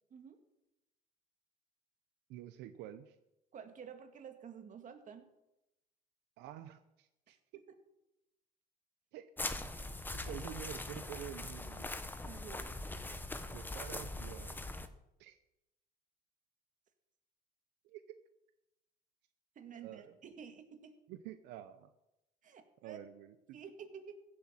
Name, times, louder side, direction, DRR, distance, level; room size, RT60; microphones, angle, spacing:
voice 1, 2.3-3.2 6.4-7.4 9.1-9.3 10.1-11.9 13.4-14.7 15.2-15.4 17.8-18.0 19.8-20.2 21.1-21.9 22.8-23.6, right 12 dB, 90° right, 10 dB, 0.8 m, -48 dB
voice 2, 3.5-5.3 7.3-7.4 12.2-12.7 19.6-21.0 22.4-23.0 23.5-24.2, right 7 dB, 50° right, 6 dB, 2.0 m, -51 dB
sound 1, 9.4-14.9, left 2 dB, 10° left, 1.1 m, -42 dB
15.5 x 8.0 x 7.3 m, 0.91 s
cardioid pair, 110°, 17 cm